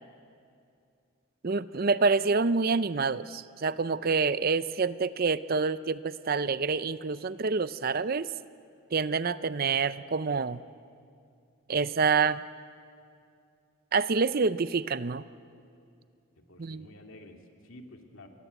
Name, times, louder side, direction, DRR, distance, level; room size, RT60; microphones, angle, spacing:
voice 1, 1.4-8.3 8.9-10.6 11.7-12.4 13.9-15.2 16.6-16.9, right 4 dB, 45° right, 15 dB, 0.5 m, -27 dB
voice 2, 16.4-18.3, left 1 dB, 70° left, 3 dB, 2.7 m, -50 dB
30.0 x 22.5 x 8.2 m, 2.4 s
head